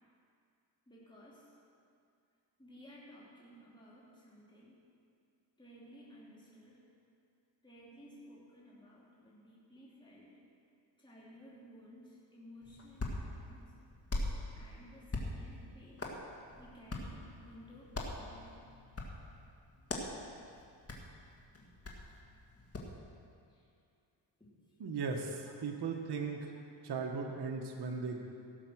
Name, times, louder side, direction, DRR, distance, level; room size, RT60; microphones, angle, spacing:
voice 1, 0.9-1.5 2.6-4.8 5.6-6.8 7.6-10.4 11.0-13.7 14.5-16.2 16.6-18.6 23.5-23.6 24.4-24.5 25.5-25.7, equal, 10° left, -7 dB, 3.1 m, -56 dB
Hands, 12.6-23.0, left 2 dB, 30° left, 1.9 m, -43 dB
voice 2, 24.8-26.5 26.8-28.2, right 5 dB, 55° right, 2 dB, 1.4 m, -37 dB
16.5 x 6.9 x 6.2 m, 2.4 s
cardioid pair, 90°, 47 cm